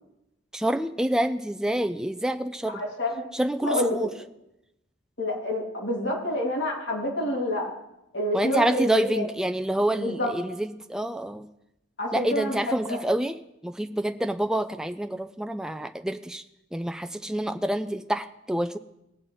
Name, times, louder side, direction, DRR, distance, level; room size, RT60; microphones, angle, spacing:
voice 1, 0.5-2.8 3.3-4.1 8.3-11.5 12.1-13.4 13.6-16.4 16.7-18.8, right 1 dB, 5° right, 7 dB, 0.3 m, -27 dB
voice 2, 2.7-3.2 3.6-4.1 5.2-7.7 8.1-9.3 9.9-10.4 12.0-13.0, left 1 dB, 70° left, -2 dB, 3.0 m, -28 dB
19.0 x 7.8 x 3.9 m, 0.87 s
head